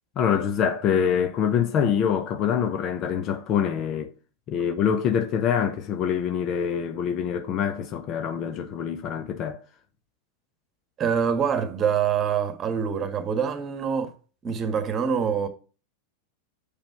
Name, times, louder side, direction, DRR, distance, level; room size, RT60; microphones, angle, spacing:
voice 1, 0.2-4.1 4.5-9.6, left 8 dB, 40° left, 0.8 m, -25 dB
voice 2, 11.0-14.1 14.4-15.5, right 7 dB, 30° right, 1.5 m, -25 dB
6.9 x 5.1 x 4.8 m
hypercardioid pair, 95°, 0 cm